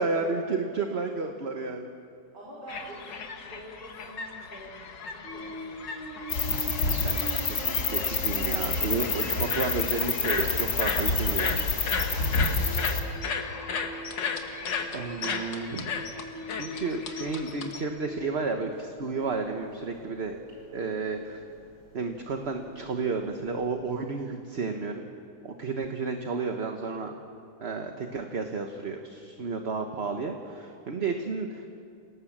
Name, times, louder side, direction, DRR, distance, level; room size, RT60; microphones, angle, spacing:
voice 1, 0.0-1.9 6.8-7.2 7.5-11.6 14.9-16.0 16.5-20.4 20.7-21.4 21.9-25.1 25.4-27.2 27.6-31.7, right 4 dB, 40° right, 4 dB, 1.3 m, -32 dB
voice 2, 2.3-6.0 12.9-13.2, equal, 70° right, -6 dB, 4.7 m, -46 dB
sound 1, 2.7-17.8, left 5 dB, 85° left, 2.2 m, -35 dB
sound 2, 5.2-24.1, equal, 90° right, 6.7 m, -44 dB
sound 3, 6.3-13.0, left 4 dB, 60° left, 2.5 m, -28 dB
27.5 x 18.5 x 7.4 m, 2.4 s
omnidirectional pair, 1.9 m